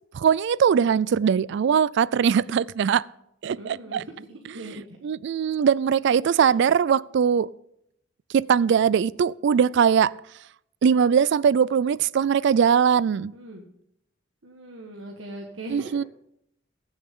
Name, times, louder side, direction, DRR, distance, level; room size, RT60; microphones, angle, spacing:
voice 1, 0.1-3.0 3.4-4.0 5.0-7.5 8.3-10.1 10.8-13.3 15.7-16.0, right 7 dB, 65° right, 0.3 m, -21 dB
voice 2, 3.6-4.0 4.3-5.0 6.4-6.5 13.3-13.7 14.4-15.9, right 1 dB, 85° right, 1.5 m, -40 dB
21.5 x 7.3 x 3.7 m
head